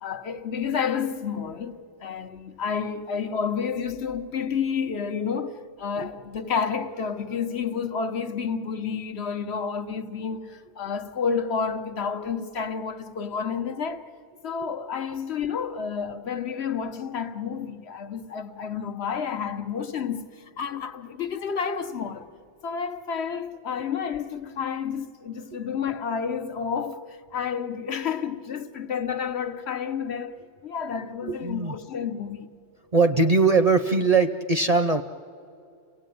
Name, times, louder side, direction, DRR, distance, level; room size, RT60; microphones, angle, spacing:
voice 1, 0.0-14.1 14.4-22.3 22.6-30.4 30.6-32.5, left 6 dB, 65° left, 1.2 m, -30 dB
voice 2, 31.2-31.7 32.9-35.0, right 4 dB, 40° right, 0.7 m, -21 dB
30.0 x 17.5 x 9.3 m
omnidirectional pair, 1.2 m